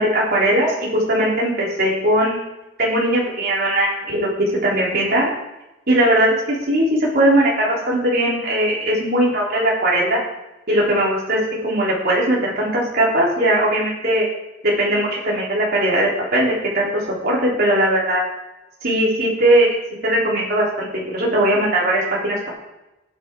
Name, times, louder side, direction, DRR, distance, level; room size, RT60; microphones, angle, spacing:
voice 1, 0.0-2.4 2.8-4.3 4.6-5.3 5.9-10.2 10.7-11.4 11.6-14.3 14.6-16.9 17.2-18.2 18.8-19.7 20.0-22.5, right 1 dB, 55° right, -5 dB, 3.9 m, -19 dB
14.0 x 10.0 x 3.9 m, 0.99 s
head